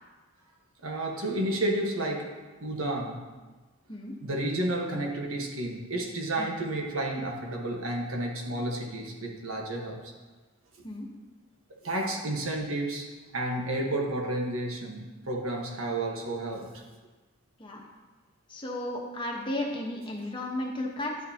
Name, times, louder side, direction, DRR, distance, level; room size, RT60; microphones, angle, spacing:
voice 1, 0.8-2.3 2.6-3.2 4.2-10.0 11.8-16.7, right 1 dB, 80° right, 0 dB, 1.3 m, -31 dB
voice 2, 18.5-21.3, left 1 dB, 25° left, -1 dB, 1.1 m, -34 dB
10.5 x 6.6 x 2.8 m, 1.3 s
head